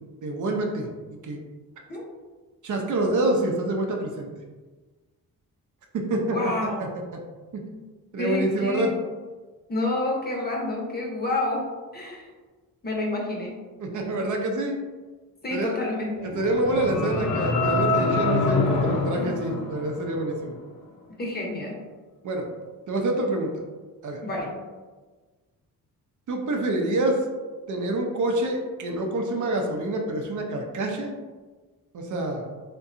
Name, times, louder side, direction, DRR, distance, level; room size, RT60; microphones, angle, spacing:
voice 1, 0.2-0.9 1.2-1.4 2.6-4.3 5.9-7.0 7.5-7.7 8.1-8.9 13.8-14.8 15.5-15.8 16.2-20.6 22.2-22.5 22.9-23.5 24.0-24.2 26.3-27.2 27.7-31.1 31.9-32.5, right 1 dB, 55° right, 1 dB, 0.5 m, -27 dB
voice 2, 6.2-6.9 7.7-7.8 8.2-9.0 9.7-11.7 11.9-12.3 12.8-13.6 15.4-16.3 21.2-21.8 24.2-24.6, left 2 dB, 25° left, -2 dB, 0.7 m, -29 dB
sound 1, 16.2-20.4, left 3 dB, 75° left, 0.6 m, -25 dB
2.7 x 2.2 x 2.5 m, 1.3 s
cardioid pair, 70°, 37 cm